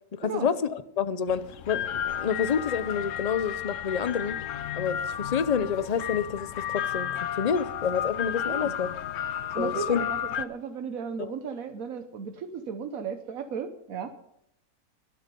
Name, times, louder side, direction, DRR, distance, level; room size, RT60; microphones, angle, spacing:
voice 1, 0.2-4.4 4.7-7.1 7.4-8.9 9.6-10.0 11.2-11.3, left 7 dB, 40° left, 13 dB, 0.6 m, -28 dB
sound 1, 1.3-10.5, left 10 dB, 70° left, 1.0 m, -33 dB
voice 2, 9.5-14.1, right 6 dB, 85° right, 7 dB, 1.4 m, -35 dB
23.0 x 7.8 x 5.4 m, 0.75 s
omnidirectional pair, 1.4 m